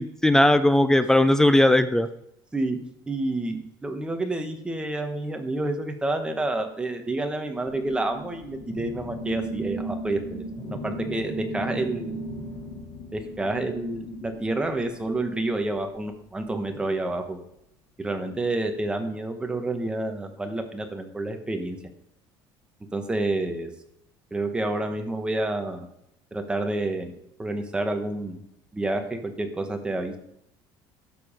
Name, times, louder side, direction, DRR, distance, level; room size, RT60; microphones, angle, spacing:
voice 1, 0.0-2.1, left 1 dB, 5° left, 11 dB, 0.4 m, -18 dB
voice 2, 3.1-10.4 10.8-12.2 13.1-17.4 18.0-21.8 22.9-23.7 24.3-25.9 26.3-27.1 27.4-28.4 28.7-30.2, right 2 dB, 10° right, 5 dB, 1.1 m, -29 dB
sound 1, 7.7-15.4, right 1 dB, 35° left, 2.2 m, -36 dB
12.5 x 4.6 x 5.0 m, 0.77 s
cardioid pair, 145°, 9 cm